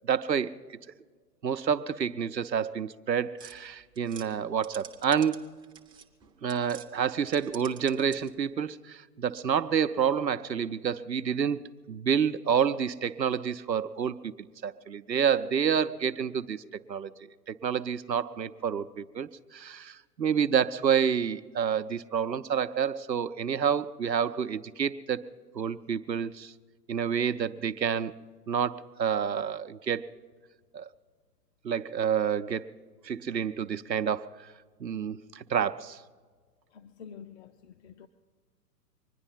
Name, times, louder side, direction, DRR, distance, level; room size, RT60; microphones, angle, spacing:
voice 1, 0.1-0.5 1.4-5.6 6.4-14.3 14.6-16.6 16.9-17.1 17.5-25.2 25.5-26.5 26.9-28.2 28.5-30.0 30.7-30.9 31.6-32.7 33.0-34.5 34.8-36.0, right 7 dB, 90° right, 0.7 m, -28 dB
sound 1, 3.4-6.9 7.2-8.5, right 7 dB, 10° right, 0.5 m, -49 dB
voice 2, 36.7-38.1, left 7 dB, 45° left, 0.7 m, -48 dB
23.5 x 10.5 x 5.7 m
figure-of-eight pair, 110°, 49 cm